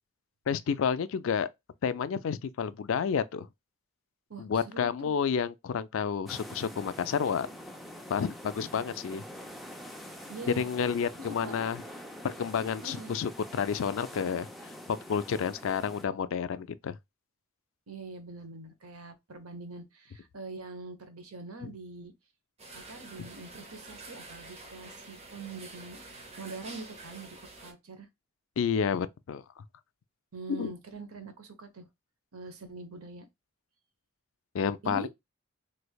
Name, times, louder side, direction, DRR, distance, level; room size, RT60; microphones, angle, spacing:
voice 1, 0.5-1.5 1.8-3.5 4.4-7.5 8.1-9.2 10.5-11.8 12.2-14.5 15.1-17.0 21.6-21.7 28.6-29.4 30.5-30.7 34.5-35.1, left 6 dB, 65° left, 0.4 m, -30 dB
voice 2, 4.3-5.1 10.3-10.7 11.2-11.6 12.8-13.1 17.9-22.1 22.7-26.0 26.4-28.1 30.3-31.9 32.3-33.3 34.8-35.1, right 2 dB, 90° right, 0.9 m, -43 dB
sound 1, 6.3-16.1, equal, ahead, 0.4 m, -45 dB
sound 2, 22.6-27.7, right 2 dB, 30° right, 0.8 m, -48 dB
3.4 x 3.2 x 2.3 m
head